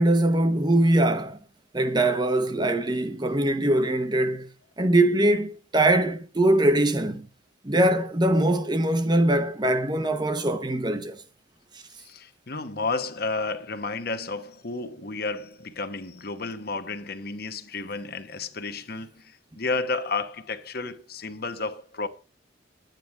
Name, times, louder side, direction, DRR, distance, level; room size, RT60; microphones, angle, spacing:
voice 1, 0.0-1.4 1.7-4.5 4.8-7.2 7.6-11.2, right 1 dB, 20° right, 0.8 m, -22 dB
voice 2, 12.0-22.1, left 3 dB, 50° left, 1.0 m, -32 dB
11.0 x 9.2 x 4.6 m
head